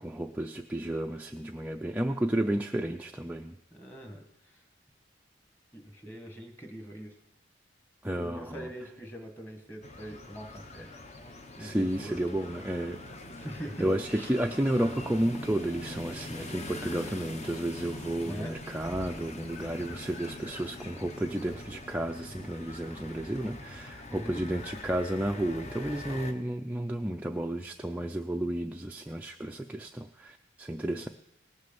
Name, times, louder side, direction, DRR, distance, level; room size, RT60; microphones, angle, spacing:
voice 1, 0.0-3.6 8.0-8.7 11.6-13.0 13.8-31.1, right 1 dB, 10° right, 3 dB, 0.4 m, -32 dB
voice 2, 3.7-4.6 5.7-7.2 8.1-11.0 11.6-12.2 13.4-14.3 18.2-18.6 24.1-24.4, equal, 10° left, 4 dB, 1.6 m, -43 dB
sound 1, 9.8-26.3, left 2 dB, 35° left, 1.0 m, -43 dB
18.5 x 6.5 x 7.0 m, 0.83 s
head